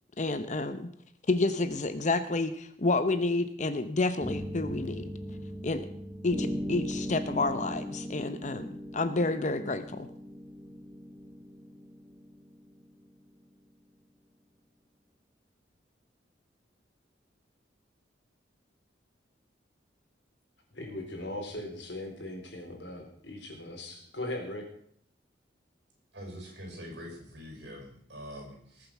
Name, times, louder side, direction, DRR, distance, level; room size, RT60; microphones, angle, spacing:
voice 1, 0.2-0.9 1.3-5.1 5.6-5.9 6.2-10.1, left 2 dB, 40° left, 10 dB, 0.8 m, -29 dB
sound 1, 4.2-13.0, equal, 10° right, 1.4 m, -39 dB
voice 2, 20.7-24.6, left 1 dB, 75° left, 2 dB, 3.8 m, -39 dB
voice 3, 26.1-28.9, equal, 65° right, 1 dB, 6.3 m, -44 dB
19.5 x 7.7 x 6.0 m, 0.65 s
head